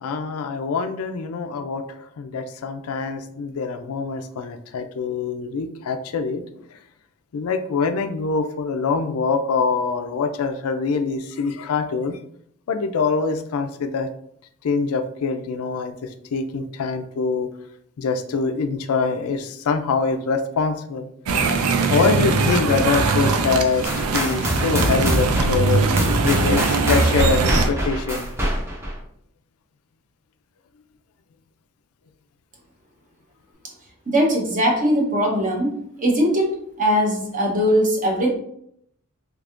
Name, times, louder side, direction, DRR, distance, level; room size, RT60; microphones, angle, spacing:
voice 1, 0.0-6.4 7.3-12.2 12.7-14.1 14.6-17.5 18.0-21.1 21.9-25.8 26.2-28.3, left 4 dB, 75° left, 7 dB, 0.4 m, -24 dB
sound 1, 21.3-27.7, right 4 dB, 85° right, 0.4 m, -21 dB
sound 2, 23.8-29.0, equal, 10° right, 0.6 m, -25 dB
voice 2, 34.1-35.7 36.0-38.3, equal, 40° right, 0 dB, 0.9 m, -20 dB
3.4 x 3.2 x 2.5 m, 0.70 s
head